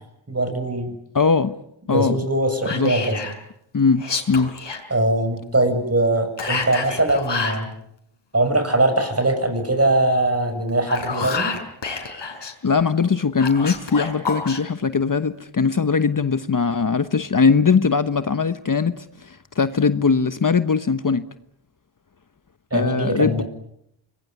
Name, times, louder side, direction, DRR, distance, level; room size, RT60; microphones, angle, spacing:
voice 1, 0.3-0.9 1.9-3.2 4.9-7.7 8.3-11.5 22.7-23.4, right 2 dB, 30° right, 7 dB, 7.7 m, -21 dB
voice 2, 1.1-1.5 1.9-2.2 2.7-2.9 3.7-4.5 12.6-21.3 22.7-23.4, left 5 dB, 40° left, 12 dB, 1.1 m, -20 dB
Whispering, 2.6-3.4 4.0-4.8 6.4-7.6 10.7-12.5 13.4-14.6, left 4 dB, 60° left, 5.0 m, -28 dB
26.0 x 21.5 x 9.7 m, 0.78 s
cardioid pair, 70°, 48 cm